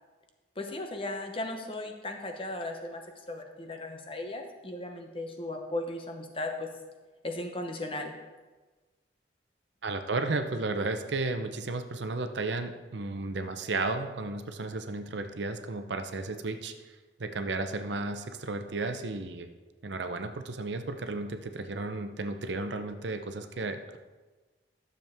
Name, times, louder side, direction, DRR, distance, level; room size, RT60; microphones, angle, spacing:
voice 1, 0.6-3.0 3.3-6.7 7.2-8.2, left 2 dB, 30° left, 4 dB, 0.9 m, -36 dB
voice 2, 9.8-16.7 17.2-19.5 19.8-24.0, right 3 dB, 75° right, 7 dB, 0.7 m, -33 dB
12.0 x 7.1 x 3.6 m, 1.3 s
head